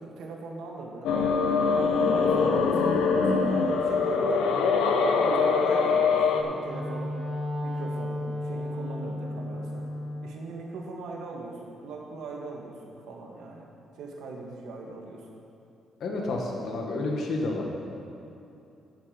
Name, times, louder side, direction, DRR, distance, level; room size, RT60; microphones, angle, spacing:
voice 1, 0.0-1.7 2.1-4.4 5.2-7.2 7.6-9.9 10.2-13.7 14.0-15.4 16.1-16.4, right 3 dB, 85° right, 0 dB, 1.6 m, -40 dB
sound 1, 1.0-6.4, left 5 dB, 90° left, 0.8 m, -23 dB
Wind instrument woodwind instrument, 6.2-10.3, left 1 dB, 50° right, 2.6 m, -34 dB
voice 2, 16.0-17.7, left 2 dB, 65° left, 0 dB, 1.7 m, -30 dB
11.0 x 8.3 x 5.2 m, 2.8 s
cardioid pair, 90°, 0 cm